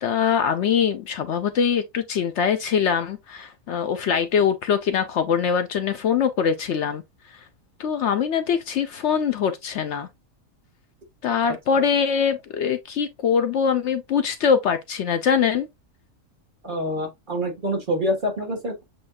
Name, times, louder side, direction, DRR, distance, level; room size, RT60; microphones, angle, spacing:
voice 1, 0.0-7.0 7.8-10.1 11.2-15.7, left 7 dB, 65° left, 0.8 m, -23 dB
voice 2, 11.4-11.8 16.6-18.8, equal, 40° right, 1.6 m, -27 dB
7.7 x 2.6 x 2.4 m
omnidirectional pair, 1.4 m